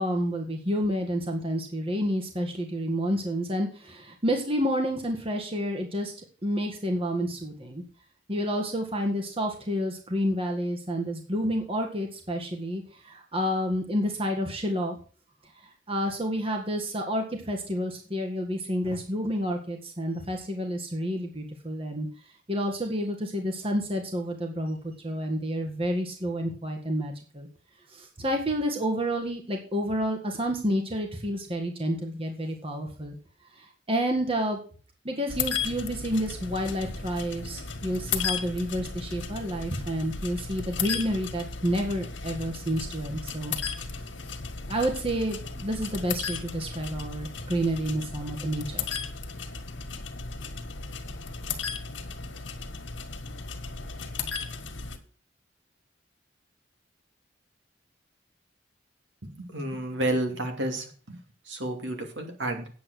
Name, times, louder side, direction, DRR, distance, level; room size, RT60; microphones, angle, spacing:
voice 1, 0.0-7.8 8.3-15.0 15.9-22.1 22.5-27.5 27.9-33.2 33.6-34.6 35.0-43.5 44.7-48.9, equal, 30° right, 2 dB, 1.8 m, -29 dB
sound 1, 35.3-55.0, left 5 dB, 80° left, 1.7 m, -35 dB
voice 2, 59.2-61.2 61.4-62.7, right 1 dB, 75° right, 4 dB, 2.7 m, -31 dB
9.3 x 7.9 x 6.4 m, 0.39 s
head